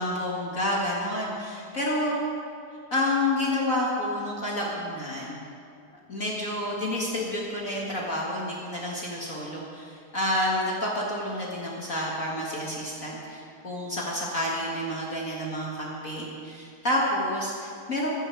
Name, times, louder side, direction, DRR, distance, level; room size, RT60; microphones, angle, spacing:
voice 1, 0.0-2.2 2.9-5.5 6.1-18.1, left 1 dB, 70° left, -4 dB, 0.7 m, -29 dB
16.0 x 14.5 x 4.6 m, 2.5 s
omnidirectional pair, 4.4 m